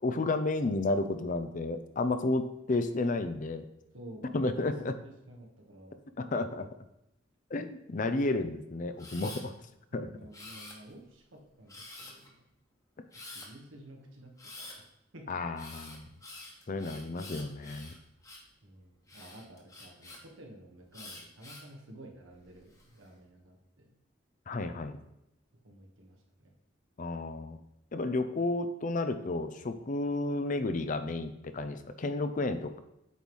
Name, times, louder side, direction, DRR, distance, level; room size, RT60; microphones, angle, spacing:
voice 1, 0.0-3.7 4.3-4.9 6.3-6.7 7.5-9.5 9.9-10.1 15.3-16.1 16.7-17.9 24.5-25.0 27.0-27.6 27.9-32.8, left 2 dB, 40° left, 9 dB, 0.5 m, -32 dB
voice 2, 3.9-4.3 4.8-6.0 9.9-12.5 13.1-15.4 18.6-23.9 25.6-26.5, right 1 dB, 85° right, 1 dB, 1.4 m, -52 dB
Camera, 9.0-9.4 10.3-11.1 11.7-12.3 13.1-13.5 14.4-14.8 15.6-18.5 19.1-20.2 20.9-21.7 22.3-22.8, left 2 dB, 15° left, 1.1 m, -47 dB
8.3 x 3.2 x 5.3 m, 0.84 s
head